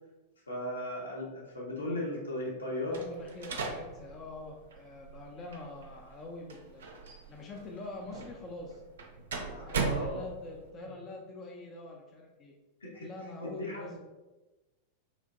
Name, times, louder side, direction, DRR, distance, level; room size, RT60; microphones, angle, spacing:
voice 1, 0.5-3.0 9.5-10.2 12.8-13.1 13.4-14.0, left 1 dB, 75° left, -3 dB, 0.7 m, -36 dB
voice 2, 2.9-6.9 7.3-8.8 9.4-12.5 12.9-14.0, left 2 dB, 30° left, 0 dB, 0.4 m, -45 dB
sound 1, 2.9-10.7, right 4 dB, 65° right, 0.4 m, -39 dB
3.1 x 2.5 x 2.4 m, 1.1 s
figure-of-eight pair, 90°, 0 cm